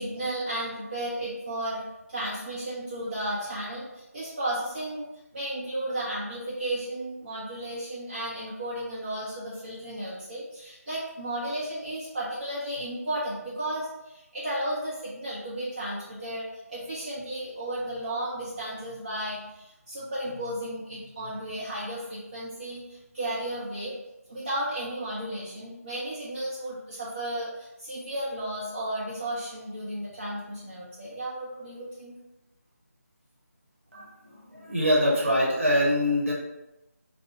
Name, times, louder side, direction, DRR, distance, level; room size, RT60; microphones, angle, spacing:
voice 1, 0.0-5.1 5.3-23.9 24.3-32.1, right 1 dB, 35° right, -9 dB, 0.6 m, -34 dB
voice 2, 34.5-36.3, equal, 50° right, -4 dB, 1.0 m, -23 dB
2.9 x 2.0 x 3.5 m, 0.97 s
figure-of-eight pair, 160°, 9 cm